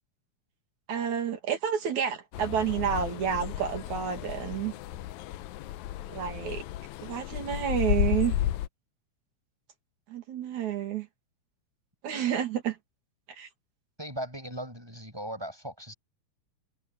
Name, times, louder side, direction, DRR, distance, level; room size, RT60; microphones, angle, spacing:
voice 1, 0.9-4.7 6.1-6.6 7.0-8.4 10.1-11.1 12.0-12.8 13.4-13.5, right 8 dB, 70° right, 3.9 m, -30 dB
sound 1, 2.3-8.7, left 13 dB, 80° left, 2.0 m, -33 dB
voice 2, 14.0-15.9, equal, 5° right, 6.9 m, -38 dB
omnidirectional pair, 3.4 m